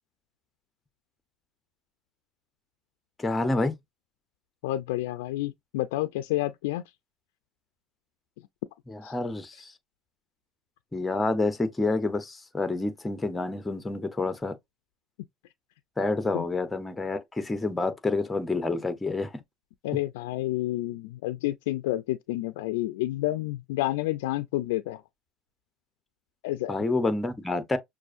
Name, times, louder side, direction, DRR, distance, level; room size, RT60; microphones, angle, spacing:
voice 1, 3.2-3.8 8.9-9.7 10.9-14.5 16.0-19.3 26.7-27.8, left 3 dB, 15° left, 0.8 m, -28 dB
voice 2, 4.6-6.8 9.0-9.1 16.3-16.5 19.8-25.0 26.4-26.7, left 16 dB, 90° left, 0.4 m, -29 dB
6.1 x 2.5 x 2.5 m
supercardioid pair, 115°, 0 cm